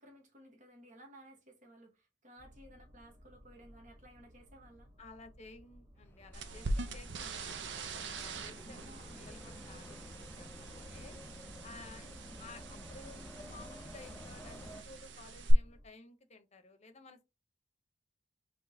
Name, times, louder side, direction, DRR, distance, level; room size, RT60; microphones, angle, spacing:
voice 1, 0.0-4.9 8.6-9.3 11.8-11.9 12.1-12.5, right 1 dB, 45° right, 1.2 m, -57 dB
sound 1, 2.4-15.9, equal, 25° right, 0.9 m, -59 dB
voice 2, 5.0-11.2 11.6-17.2, left 3 dB, 35° left, 0.8 m, -55 dB
sound 2, 6.0-14.8, left 1 dB, 10° left, 0.4 m, -51 dB
sound 3, 6.3-15.5, right 2 dB, 70° right, 0.7 m, -43 dB
5.2 x 3.0 x 2.7 m
head